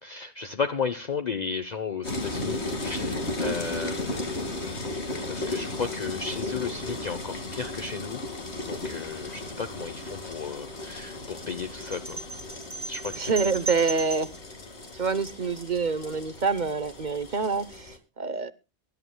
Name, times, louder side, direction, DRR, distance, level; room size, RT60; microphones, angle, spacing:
voice 1, 0.0-4.9 5.3-8.2 8.7-12.2 12.9-13.3, left 5 dB, 45° left, 0.9 m, -34 dB
sound 1, 2.0-18.0, left 2 dB, 80° left, 2.5 m, -35 dB
sound 2, 11.9-14.4, right 3 dB, 80° right, 2.4 m, -36 dB
voice 2, 13.2-14.3 14.9-18.5, right 5 dB, 45° right, 1.0 m, -27 dB
23.0 x 11.0 x 2.2 m
omnidirectional pair, 1.1 m